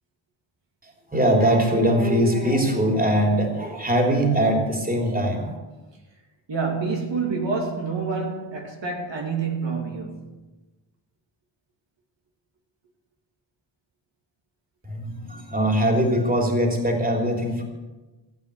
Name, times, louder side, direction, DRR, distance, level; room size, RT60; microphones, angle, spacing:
voice 1, 0.8-5.6 14.8-17.6, right 1 dB, 20° right, 3.3 m, -22 dB
voice 2, 6.5-10.4, right 4 dB, 70° right, 2.6 m, -28 dB
16.5 x 8.6 x 8.3 m
wide cardioid pair, 105°, 45 cm